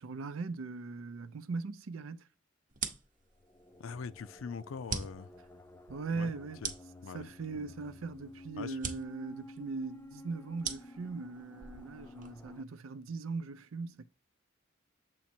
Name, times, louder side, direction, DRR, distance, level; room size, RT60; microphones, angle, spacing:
voice 1, 0.0-2.2 5.9-6.6 7.1-14.0, right 4 dB, 80° right, 0.5 m, -39 dB
sound 1, 2.7-12.6, right 5 dB, 40° right, 0.8 m, -44 dB
sound 2, 3.3-12.6, left 1 dB, 10° left, 0.3 m, -53 dB
voice 2, 3.8-5.3 6.1-6.3 6.6-6.7 7.0-7.7 8.6-8.8, left 5 dB, 75° left, 0.4 m, -43 dB
7.2 x 3.1 x 4.3 m
head